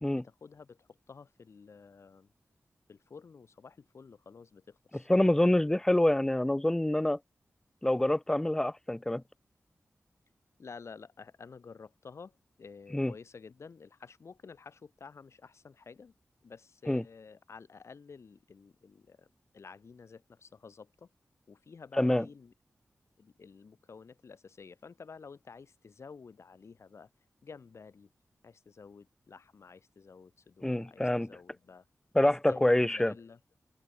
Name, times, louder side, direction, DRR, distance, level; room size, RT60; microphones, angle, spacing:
voice 1, 0.2-2.3 2.9-5.1 10.6-16.1 16.4-19.3 19.5-21.1 21.5-22.5 23.2-27.1 27.4-28.1 28.4-31.9 32.2-33.4, left 5 dB, 65° left, 5.5 m, -51 dB
voice 2, 5.1-7.2 7.8-9.2 12.9-13.1 16.9-17.0 22.0-22.2 30.6-31.3 32.1-33.1, left 1 dB, 10° left, 0.4 m, -26 dB
open air
wide cardioid pair, 115°, 5 cm